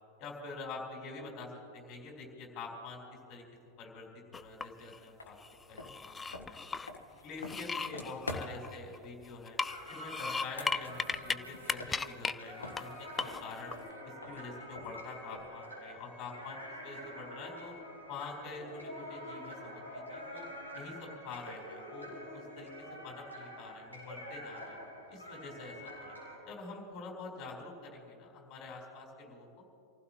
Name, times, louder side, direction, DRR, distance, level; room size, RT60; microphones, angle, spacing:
voice 1, 0.2-3.0 3.3-3.4 3.8-4.1 4.3-5.4 5.7-6.2 6.5-6.7 7.2-9.6 9.9-13.7 14.0-17.7 18.1-20.5 20.7-22.7 23.0-24.8 25.1-26.1 26.5-29.5, left 3 dB, 35° left, -1 dB, 4.3 m, -46 dB
sound 1, 4.3-5.0 5.4-6.9 7.4-9.0 9.5-11.4 11.6-12.3 12.8-12.9 13.2-13.7, left 4 dB, 15° left, 0.4 m, -36 dB
sound 2, 5.2-5.3 5.7-8.8 10.3-12.4 12.6-15.7, left 2 dB, 75° left, 1.4 m, -46 dB
sound 3, 9.6-26.4, equal, 80° right, 4.4 m, -47 dB
27.0 x 15.5 x 3.1 m, 2.8 s
figure-of-eight pair, 90°, 0 cm